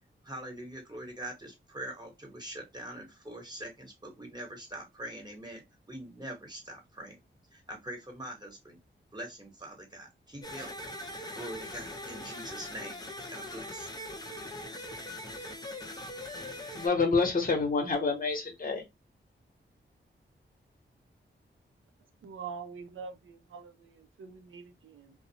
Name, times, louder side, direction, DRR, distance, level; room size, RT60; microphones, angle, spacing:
voice 1, 0.2-7.2 7.5-8.8 9.1-10.7 11.0-13.0 13.3-13.9, right 1 dB, 20° right, 1.1 m, -43 dB
sound 1, 10.4-16.9, left 1 dB, 20° left, 0.7 m, -41 dB
voice 2, 16.7-18.8, left 4 dB, 45° left, 0.9 m, -27 dB
voice 3, 22.2-25.1, right 5 dB, 80° right, 0.5 m, -44 dB
2.5 x 2.0 x 2.8 m
cardioid pair, 60°, 20 cm